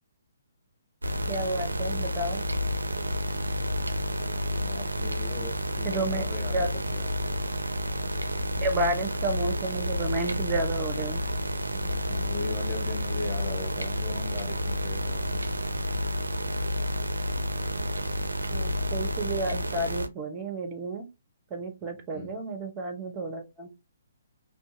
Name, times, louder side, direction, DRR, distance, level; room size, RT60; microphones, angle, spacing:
sound 1, 1.0-20.1, equal, 85° right, 0.4 m, -30 dB
voice 1, 1.3-2.4 5.8-6.3 6.5-6.7 8.6-11.2 18.5-21.1 21.5-23.7, right 2 dB, 25° right, 6 dB, 0.7 m, -31 dB
voice 2, 4.5-7.5 11.7-15.5 22.1-22.3, left 3 dB, 25° left, 1 dB, 0.9 m, -39 dB
2.6 x 2.2 x 2.6 m, 0.23 s
figure-of-eight pair, 135°, 0 cm